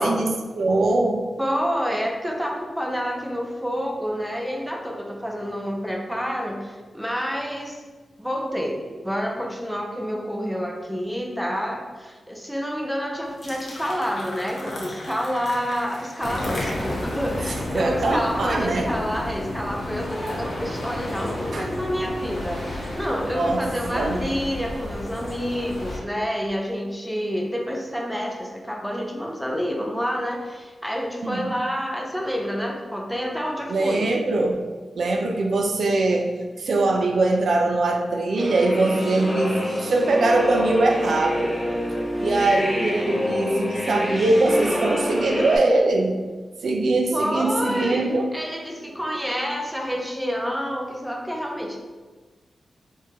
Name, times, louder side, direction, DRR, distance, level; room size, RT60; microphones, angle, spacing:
voice 1, 0.0-1.2 17.7-18.9 21.5-21.7 23.3-23.6 23.9-24.2 31.2-31.5 33.7-34.6 35.0-41.5 42.2-46.2 46.6-48.3, right 2 dB, 70° right, 2 dB, 0.4 m, -22 dB
voice 2, 1.4-7.8 8.2-34.1 47.1-51.8, equal, ahead, 0 dB, 0.5 m, -28 dB
sound 1, 13.2-18.5, left 1 dB, 60° left, 0.8 m, -37 dB
sound 2, 16.2-26.0, left 1 dB, 85° left, 1.3 m, -31 dB
sound 3, 38.3-45.6, left 1 dB, 20° left, 0.9 m, -27 dB
4.6 x 2.2 x 2.9 m, 1.3 s
wide cardioid pair, 115°, 0 cm